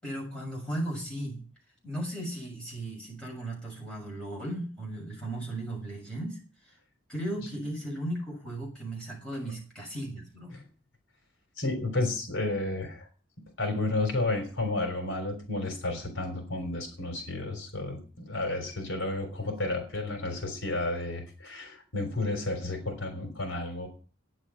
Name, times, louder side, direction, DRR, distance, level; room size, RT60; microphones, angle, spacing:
voice 1, 0.0-1.5 1.8-6.4 7.1-10.5, right 1 dB, 5° left, -4 dB, 6.7 m, -36 dB
voice 2, 11.6-13.1 13.6-23.9, left 2 dB, 80° left, 5 dB, 3.6 m, -32 dB
11.0 x 9.6 x 5.7 m, 0.37 s
head